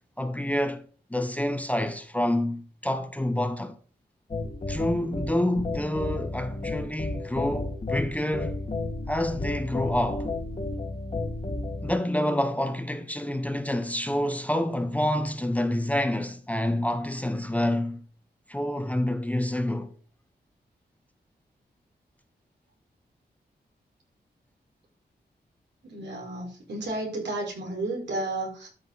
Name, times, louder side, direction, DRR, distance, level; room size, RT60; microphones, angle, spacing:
voice 1, 0.2-0.8 1.1-3.7 4.7-8.5 9.1-10.3 11.8-18.0 18.5-19.9, left 1 dB, 10° left, 0.9 m, -28 dB
sound 1, 4.3-12.0, left 2 dB, 35° left, 1.7 m, -32 dB
voice 2, 25.8-28.7, right 2 dB, 90° right, 5.0 m, -32 dB
12.5 x 6.5 x 4.0 m
wide cardioid pair, 145°, 18 cm